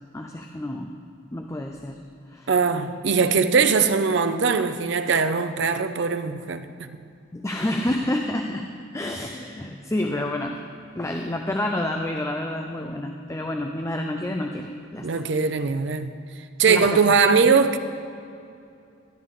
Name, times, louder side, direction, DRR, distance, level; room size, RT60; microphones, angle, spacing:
voice 1, 0.1-0.9 1.3-2.0 2.3-2.5 7.3-8.7 8.9-10.6 10.9-15.1 16.7-17.0, left 1 dB, 15° left, 0.4 m, -29 dB
voice 2, 2.5-6.9 15.0-16.2 16.6-17.8, right 5 dB, 60° right, 0.5 m, -21 dB
12.5 x 11.5 x 3.7 m
head